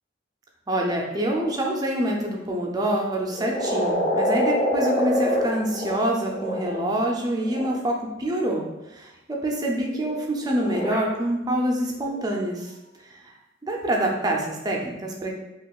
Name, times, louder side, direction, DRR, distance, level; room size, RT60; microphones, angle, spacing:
voice 1, 0.7-8.6 8.9-12.7 13.1-13.3 13.6-15.3, right 1 dB, 20° right, 0 dB, 0.4 m, -26 dB
sound 1, 1.1-1.4 3.3-7.7 9.8-11.0 12.0-12.2, equal, 60° left, 1.3 m, -25 dB
3.6 x 3.0 x 2.3 m, 0.97 s
head